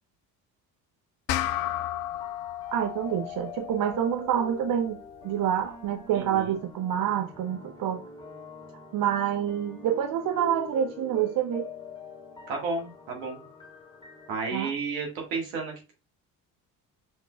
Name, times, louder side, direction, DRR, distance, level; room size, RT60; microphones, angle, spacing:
sound 1, 1.3-6.1, left 13 dB, 65° left, 0.5 m, -35 dB
sound 2, 1.7-14.4, left 4 dB, 10° left, 2.1 m, -45 dB
voice 1, 2.7-8.0 8.9-11.7 14.5-14.7, right 9 dB, 45° right, 0.6 m, -27 dB
voice 2, 6.1-6.6 12.5-13.4 14.3-15.9, right 4 dB, 70° right, 1.8 m, -32 dB
5.2 x 3.6 x 2.3 m
hypercardioid pair, 50°, 49 cm